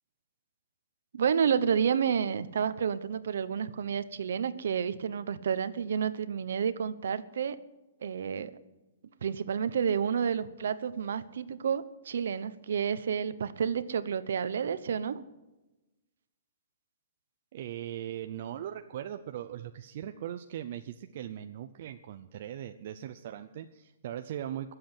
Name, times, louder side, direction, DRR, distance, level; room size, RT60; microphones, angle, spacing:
voice 1, 1.1-7.6 8.0-8.5 9.2-15.2, right 7 dB, 65° right, 13 dB, 1.0 m, -30 dB
voice 2, 17.5-24.7, right 11 dB, 40° right, 7 dB, 0.6 m, -39 dB
22.0 x 7.9 x 7.9 m, 1.0 s
hypercardioid pair, 175°, 0 cm